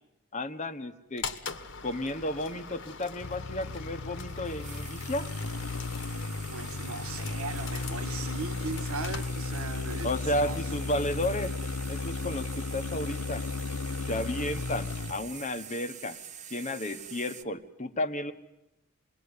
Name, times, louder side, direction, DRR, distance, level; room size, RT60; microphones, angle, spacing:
voice 1, 0.3-1.3 1.8-5.3 10.0-11.5 11.9-13.4 14.1-16.2 16.5-18.3, left 1 dB, 35° left, 1.2 m, -33 dB
sound 1, 1.2-9.9, left 5 dB, 60° left, 1.5 m, -43 dB
sound 2, 3.2-15.3, left 3 dB, 80° left, 0.9 m, -35 dB
sound 3, 4.3-17.4, right 8 dB, 35° right, 1.1 m, -46 dB
voice 2, 6.5-10.6, right 3 dB, 75° right, 1.6 m, -38 dB
26.5 x 22.0 x 9.8 m
head